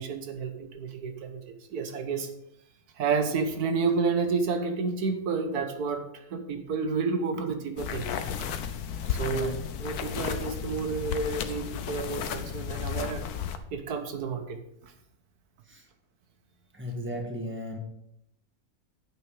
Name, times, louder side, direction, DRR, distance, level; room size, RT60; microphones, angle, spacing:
voice 1, 0.0-2.3 3.0-8.2 9.0-9.5 9.8-13.3 13.7-14.6 14.8-14.9, right 5 dB, 90° right, 7 dB, 1.6 m, -30 dB
sound 1, 7.8-13.6, left 8 dB, 90° left, 1.3 m, -33 dB
voice 2, 9.2-9.5 15.6-15.9 16.7-17.8, left 1 dB, 10° right, 2 dB, 1.6 m, -35 dB
9.6 x 8.2 x 5.0 m, 0.77 s
omnidirectional pair, 1.6 m